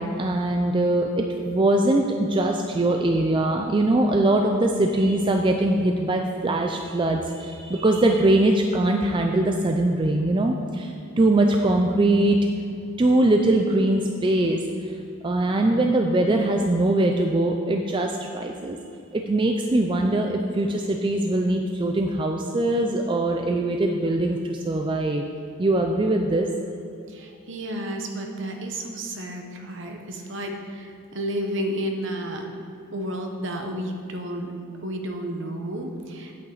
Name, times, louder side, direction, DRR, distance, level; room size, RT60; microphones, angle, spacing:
voice 1, 0.0-12.4 13.0-15.0 15.2-18.8 19.1-25.3 25.6-26.5, right 1 dB, 20° right, 3 dB, 0.3 m, -22 dB
voice 2, 27.1-32.5 32.9-34.5 34.8-36.3, right 1 dB, 55° right, 3 dB, 1.0 m, -31 dB
8.5 x 8.4 x 4.0 m, 2.6 s
head